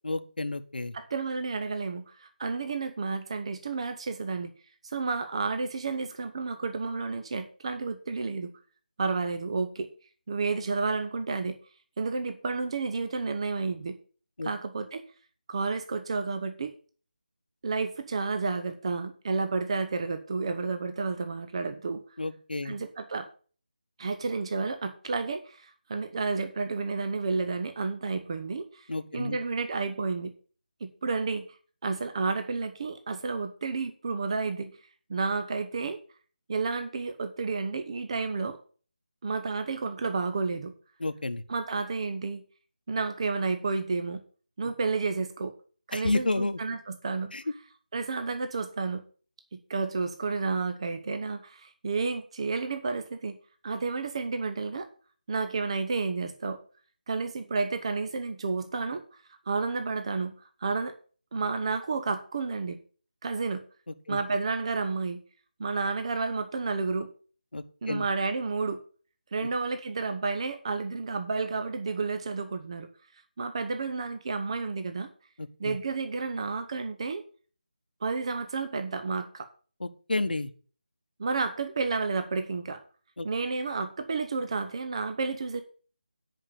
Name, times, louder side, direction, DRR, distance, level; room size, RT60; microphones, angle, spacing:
voice 1, 0.0-0.9 14.4-14.5 22.2-22.7 28.9-29.4 41.0-41.4 45.9-46.8 47.3-47.4 64.1-64.2 67.5-68.1 69.4-69.5 75.4-75.8 79.8-80.5 83.2-83.3, left 2 dB, 75° left, 9 dB, 1.0 m, -31 dB
voice 2, 0.9-4.5 4.8-8.5 9.0-9.9 10.3-11.6 12.0-14.0 14.4-15.0 15.5-16.7 17.6-22.0 22.6-23.3 24.0-28.9 29.1-30.3 30.8-31.4 31.8-34.7 35.1-36.0 36.5-38.6 39.2-40.7 41.5-42.4 42.9-44.2 44.6-45.6 45.9-47.3 47.9-49.0 49.7-53.4 53.6-54.9 55.3-56.6 57.1-59.0 59.5-60.3 60.6-60.9 61.3-62.8 63.2-63.6 64.1-65.2 65.6-67.1 67.8-68.8 69.3-72.9 73.4-75.1 75.6-77.2 78.0-79.5 81.2-82.8 83.2-85.6, right 4 dB, 40° right, 8 dB, 0.9 m, -31 dB
9.5 x 5.4 x 6.8 m, 0.40 s
figure-of-eight pair, 160°, 5 cm